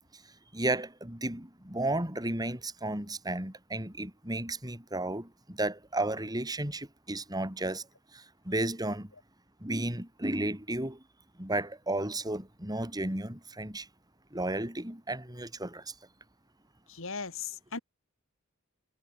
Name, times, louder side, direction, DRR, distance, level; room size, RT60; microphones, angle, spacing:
voice 1, 0.5-7.9 8.1-9.1 9.6-11.0 11.4-13.9 14.3-15.9, right 1 dB, 15° right, 5.0 m, -33 dB
voice 2, 16.9-17.8, left 5 dB, 60° left, 2.9 m, -37 dB
head